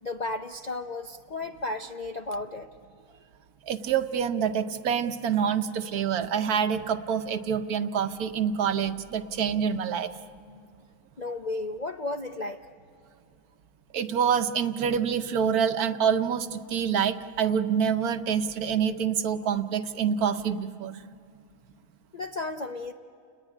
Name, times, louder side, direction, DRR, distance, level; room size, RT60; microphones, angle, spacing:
voice 1, 0.0-2.7 11.2-12.6 22.1-22.9, left 2 dB, 50° left, 5 dB, 0.5 m, -33 dB
voice 2, 3.7-10.1 13.9-21.0, right 7 dB, 65° right, 10 dB, 1.3 m, -26 dB
29.5 x 19.5 x 9.9 m, 2.4 s
omnidirectional pair, 1.8 m